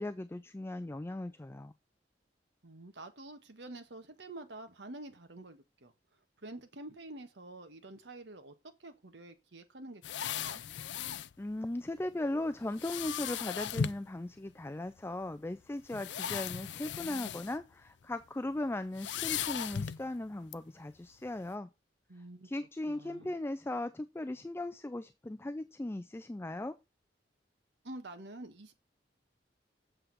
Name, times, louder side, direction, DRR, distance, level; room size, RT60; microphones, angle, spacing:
voice 1, 0.0-1.7 11.4-21.7 22.4-26.8, left 1 dB, 15° left, 0.4 m, -38 dB
voice 2, 2.6-5.9 6.4-8.5 8.8-10.6 22.1-22.5 22.9-23.3 27.8-28.7, right 2 dB, 80° right, 1.4 m, -48 dB
sound 1, 10.0-11.3 12.8-14.1 15.0-15.1 15.8-17.6 17.9-18.1 18.9-20.1 20.5-20.6, left 8 dB, 90° left, 0.4 m, -37 dB
7.9 x 6.8 x 4.1 m
head